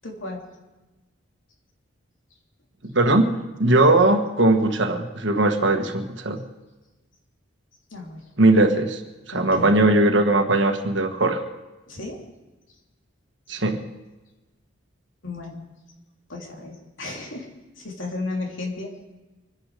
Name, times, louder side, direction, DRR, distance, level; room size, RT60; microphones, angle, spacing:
voice 1, 0.0-0.5 7.9-8.2 9.3-9.7 11.9-12.2 15.2-15.6 16.3-17.5 17.8-18.9, left 2 dB, 70° left, 1 dB, 3.3 m, -34 dB
voice 2, 2.8-6.4 8.4-9.0 9.3-11.4 13.5-13.8, right 2 dB, 60° right, 6 dB, 1.5 m, -19 dB
25.5 x 10.5 x 5.0 m, 1.1 s
head